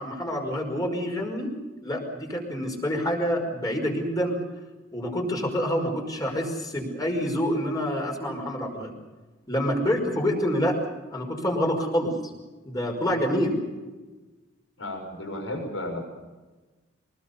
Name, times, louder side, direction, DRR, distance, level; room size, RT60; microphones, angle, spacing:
voice 1, 0.0-1.5 1.8-4.4 4.9-8.9 9.5-10.8 11.1-12.1 12.6-13.6, equal, 20° left, 2 dB, 5.5 m, -27 dB
voice 2, 14.8-16.0, left 1 dB, 85° left, 4 dB, 6.2 m, -33 dB
24.5 x 20.0 x 7.0 m, 1.2 s
head